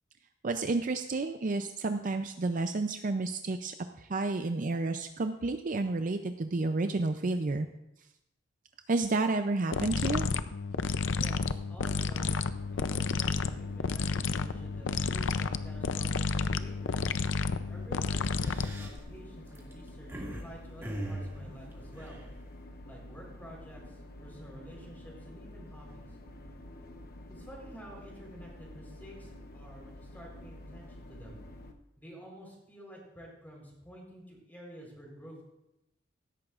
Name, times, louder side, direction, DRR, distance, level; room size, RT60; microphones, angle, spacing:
voice 1, 0.4-7.7 8.9-10.3, right 3 dB, 45° right, 7 dB, 0.5 m, -31 dB
sound 1, 9.7-19.0, left 5 dB, 90° left, 0.5 m, -31 dB
voice 2, 11.1-17.0 17.7-22.2 22.8-26.1 27.3-31.4 32.0-35.4, equal, 10° left, -2 dB, 4.0 m, -50 dB
sound 2, 12.5-31.7, left 1 dB, 50° left, 0.9 m, -48 dB
sound 3, 16.5-16.8 17.2-17.4 18.1-20.4 20.8-22.6, right 1 dB, 15° right, 2.2 m, -40 dB
16.5 x 13.5 x 2.5 m, 0.87 s
head